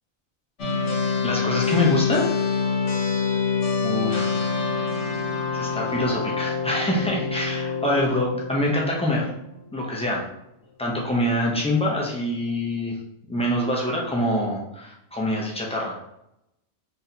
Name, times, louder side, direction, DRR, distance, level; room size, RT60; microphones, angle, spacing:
sound 1, 0.6-9.9, left 5 dB, 55° left, 1.2 m, -26 dB
voice 1, 1.2-2.3 3.8-4.5 5.5-9.3 9.7-10.2 10.8-13.0 13.3-16.0, left 1 dB, 10° left, -3 dB, 0.3 m, -25 dB
4.1 x 3.3 x 2.8 m, 0.84 s
omnidirectional pair, 1.5 m